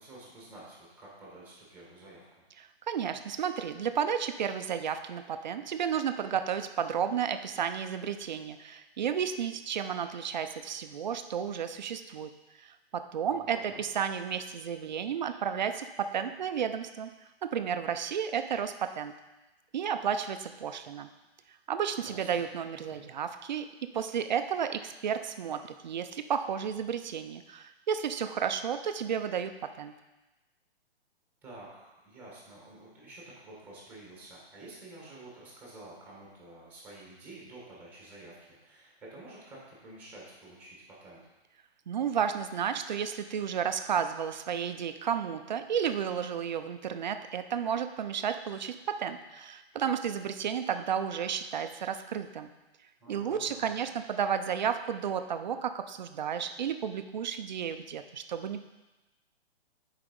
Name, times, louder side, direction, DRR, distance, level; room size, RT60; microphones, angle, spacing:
voice 1, 0.0-2.3 13.3-13.8 21.9-22.4 22.8-23.0 31.4-41.2 53.0-53.9, right 2 dB, 5° right, -4 dB, 1.6 m, -50 dB
voice 2, 2.6-12.3 12.6-17.1 17.4-19.1 19.7-21.1 21.7-29.9 41.9-52.5 53.1-58.6, right 8 dB, 45° right, 9 dB, 0.5 m, -32 dB
7.0 x 4.8 x 5.2 m, 1.1 s
hypercardioid pair, 165°, 31 cm